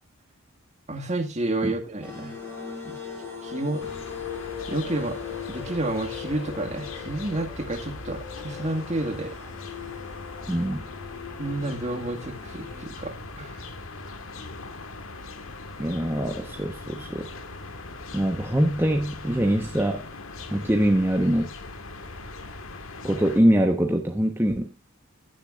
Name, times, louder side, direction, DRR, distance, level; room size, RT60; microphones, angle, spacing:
voice 1, 0.9-2.3 2.8-3.0 3.4-3.9 4.7-5.2 5.5-9.4 11.4-13.6, right 2 dB, 35° right, 5 dB, 1.9 m, -30 dB
sound 1, 2.0-12.8, left 7 dB, 10° left, 4.6 m, -39 dB
sound 2, 3.8-23.4, left 3 dB, 80° left, 1.6 m, -40 dB
voice 2, 10.5-10.9 15.8-17.3 18.1-20.1 20.5-21.5 23.0-24.7, equal, 10° right, 2 dB, 1.1 m, -23 dB
16.0 x 10.5 x 2.5 m, 0.26 s
head